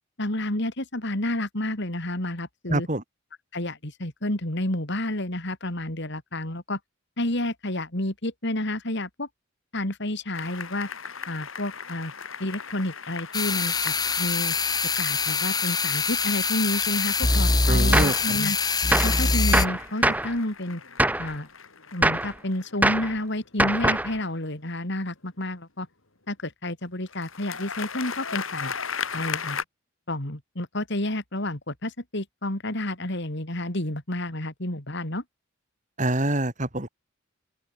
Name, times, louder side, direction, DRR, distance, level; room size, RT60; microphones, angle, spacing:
voice 1, 0.2-2.9 3.5-6.8 7.2-9.3 9.7-10.9 11.3-12.1 12.4-14.5 15.0-18.6 19.0-20.8 21.2-21.5 21.9-25.9 26.3-28.7 29.1-29.6 30.1-35.2, left 1 dB, 55° left, 3.5 m, -30 dB
voice 2, 2.7-3.0 17.7-18.3 36.0-36.9, right 1 dB, 35° right, 3.0 m, -26 dB
sound 1, 10.3-24.4 27.1-29.6, left 6 dB, 70° left, 4.1 m, -38 dB
sound 2, 13.3-19.7, left 3 dB, 20° left, 1.7 m, -24 dB
Gunshot gunfire, 17.9-18.2 18.9-19.2 19.5-20.3 21.0-21.3 22.0-22.3 22.8-23.1 23.6-24.1, right 1 dB, 5° right, 1.2 m, -23 dB
open air
head